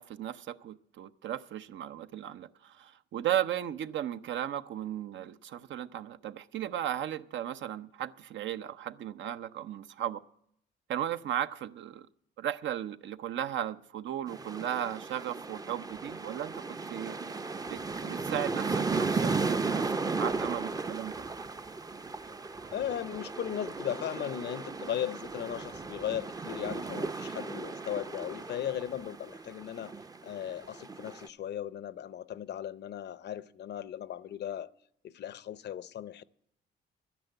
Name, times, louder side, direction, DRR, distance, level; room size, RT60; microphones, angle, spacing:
voice 1, 0.0-10.2 10.9-12.1 12.4-16.6 16.9-17.2 17.7-21.2, right 11 dB, 70° right, 0.6 m, -36 dB
sound 1, 14.3-31.3, right 4 dB, 20° right, 0.5 m, -35 dB
voice 2, 22.7-29.9 30.2-34.7 35.0-36.2, left 10 dB, 60° left, 0.6 m, -37 dB
11.5 x 10.0 x 7.9 m
cardioid pair, 90°, 20 cm